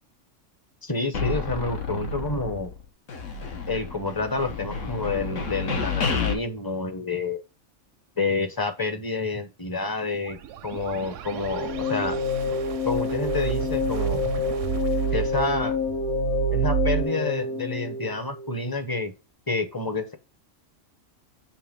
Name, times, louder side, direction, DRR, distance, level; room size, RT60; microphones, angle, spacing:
voice 1, 0.8-2.7 3.7-7.4 8.2-12.2 12.8-14.2 15.1-15.8 16.5-19.1 19.5-20.1, left 3 dB, 20° left, 8 dB, 0.6 m, -29 dB
sound 1, 1.1-2.8 3.1-6.3, left 4 dB, 80° left, 1.5 m, -30 dB
sound 2, 10.1-17.0, right 17 dB, 80° right, 0.9 m, -30 dB
sound 3, 11.4-18.6, left 4 dB, 60° left, 1.3 m, -28 dB
6.9 x 3.1 x 5.0 m, 0.28 s
omnidirectional pair, 1.3 m